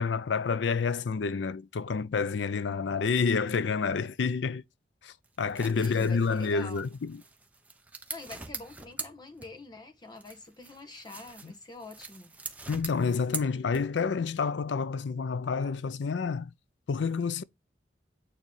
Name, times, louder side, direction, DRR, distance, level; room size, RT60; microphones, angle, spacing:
voice 1, 0.0-4.6 5.0-7.2 11.4-11.5 12.7-16.5 16.9-17.4, left 5 dB, 85° left, 0.5 m, -29 dB
sound 1, 5.2-9.8 10.2-14.1, right 3 dB, 10° right, 0.8 m, -43 dB
voice 2, 5.7-6.9 8.1-12.3, left 2 dB, 25° left, 1.1 m, -45 dB
9.1 x 3.1 x 5.4 m
head